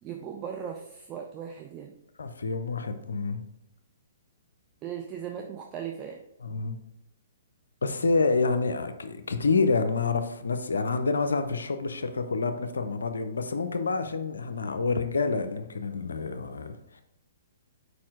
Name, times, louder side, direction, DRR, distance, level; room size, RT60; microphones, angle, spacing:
voice 1, 0.0-1.9 4.8-6.2, right 8 dB, 30° right, 3 dB, 0.5 m, -38 dB
voice 2, 2.2-3.4 6.4-6.8 7.8-17.0, left 4 dB, 75° left, 8 dB, 0.6 m, -28 dB
4.7 x 4.3 x 4.8 m, 0.82 s
figure-of-eight pair, 120°, 0 cm